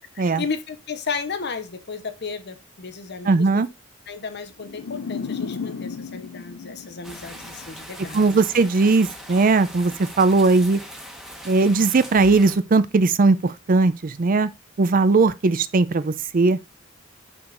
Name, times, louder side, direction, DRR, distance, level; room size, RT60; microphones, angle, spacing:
voice 1, 0.3-3.6 4.1-8.4, left 5 dB, 55° left, 0.9 m, -33 dB
voice 2, 3.3-3.7 8.0-10.8 11.4-14.5 14.8-16.6, right 3 dB, 45° right, 0.5 m, -19 dB
sound 1, 4.6-7.8, left 5 dB, 90° left, 0.5 m, -34 dB
sound 2, 7.0-12.6, equal, ahead, 1.2 m, -40 dB
6.4 x 6.1 x 2.5 m
head